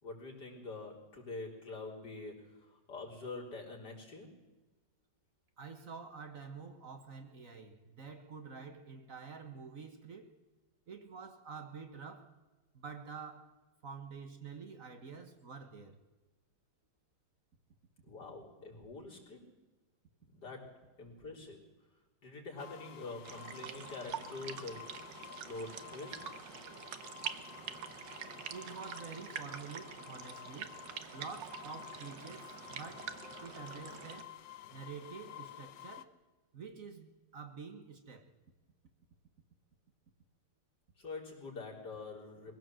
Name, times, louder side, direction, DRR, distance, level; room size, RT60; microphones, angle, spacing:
voice 1, 0.0-4.3 18.0-19.4 20.3-21.6 22.2-24.8 25.4-26.2 41.0-42.6, left 3 dB, 65° left, 4.6 m, -45 dB
voice 2, 5.6-10.3 10.9-12.4 12.7-13.6 13.8-16.0 28.5-30.8 31.1-34.3 34.7-36.2 36.5-38.3, right 5 dB, 50° right, 1.7 m, -48 dB
sound 1, 22.6-36.0, left 12 dB, 80° left, 1.6 m, -51 dB
sound 2, 23.2-34.2, right 8 dB, 75° right, 1.8 m, -46 dB
22.5 x 16.0 x 7.7 m
omnidirectional pair, 2.0 m